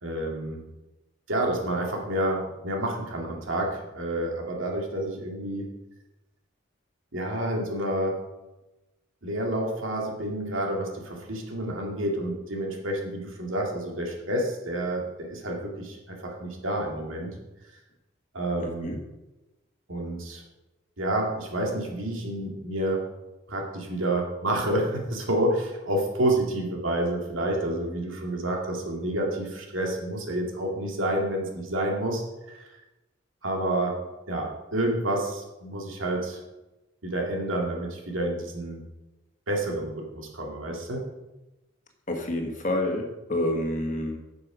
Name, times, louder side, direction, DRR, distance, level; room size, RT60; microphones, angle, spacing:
voice 1, 0.0-0.6 1.3-5.7 7.1-8.2 9.2-17.3 18.3-18.9 19.9-20.4 21.0-23.1 23.5-32.2 32.5-32.6 33.4-34.0 34.3-36.4 37.0-38.8 39.5-41.0, right 1 dB, 75° right, 0 dB, 2.2 m, -29 dB
voice 2, 18.6-19.0 42.1-44.2, left 1 dB, 40° left, 3 dB, 1.4 m, -28 dB
11.0 x 6.8 x 5.1 m, 1.0 s
head